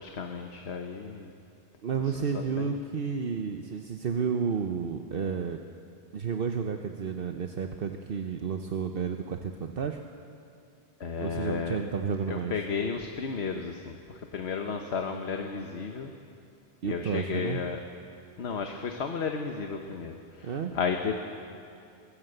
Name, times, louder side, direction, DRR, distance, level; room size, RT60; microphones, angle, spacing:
voice 1, 0.0-1.3 2.3-2.8 11.0-11.8 12.3-16.1 16.8-17.8 18.4-21.2, left 5 dB, 90° left, 4 dB, 1.3 m, -33 dB
voice 2, 1.8-5.6 6.1-10.0 11.2-12.5 16.8-17.6 20.4-20.7, right 6 dB, 65° right, 5 dB, 1.0 m, -31 dB
23.0 x 15.0 x 7.9 m, 2.6 s
omnidirectional pair, 1.1 m